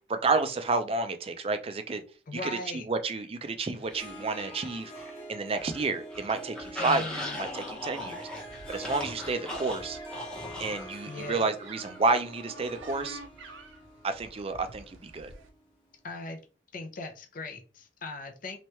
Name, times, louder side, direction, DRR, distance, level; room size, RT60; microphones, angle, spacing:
voice 1, 0.1-2.0 2.3-4.9 5.3-8.3 8.7-10.0 10.6-13.2 14.0-15.3, right 3 dB, 30° right, 8 dB, 0.4 m, -30 dB
voice 2, 2.3-2.8 6.8-7.4 11.1-11.4 16.0-16.4 16.7-18.6, left 3 dB, 45° left, 4 dB, 0.6 m, -39 dB
Harp, 3.8-15.7, right 1 dB, 25° left, 1.1 m, -46 dB
sound 1, 3.9-5.2 5.5-10.9, left 1 dB, 5° left, 0.8 m, -39 dB
sound 2, 8.1-15.5, right 2 dB, 80° right, 0.7 m, -49 dB
3.2 x 3.1 x 3.0 m, 0.35 s
head